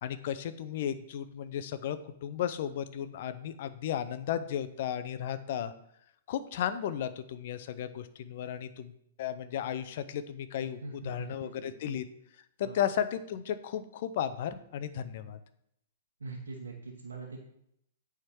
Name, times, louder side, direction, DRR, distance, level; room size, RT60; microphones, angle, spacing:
voice 1, 0.0-5.7 6.3-8.9 9.2-10.8 11.0-12.1 12.6-15.4, left 9 dB, 55° left, 12 dB, 0.6 m, -34 dB
voice 2, 10.8-11.9 12.6-12.8 15.0-15.1 16.2-17.4, right 3 dB, 85° right, -1 dB, 1.2 m, -43 dB
8.8 x 3.6 x 4.5 m, 0.74 s
hypercardioid pair, 120°, 0 cm